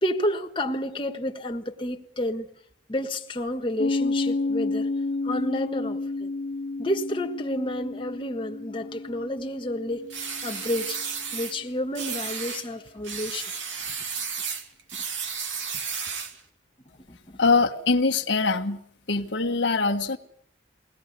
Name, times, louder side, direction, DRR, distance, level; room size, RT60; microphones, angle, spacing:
voice 1, 0.0-2.5 2.9-4.9 5.2-6.3 6.8-10.1 10.4-11.0 11.3-13.5 17.1-17.4, left 1 dB, 25° left, 1.5 m, -30 dB
Piano, 3.8-11.0, left 3 dB, 45° left, 0.8 m, -31 dB
sound 1, 10.1-11.6 11.9-12.7 13.0-16.4, right 6 dB, 80° right, 2.6 m, -33 dB
voice 2, 17.4-18.8 19.1-20.2, left 4 dB, 70° left, 1.4 m, -23 dB
22.5 x 18.5 x 8.2 m
head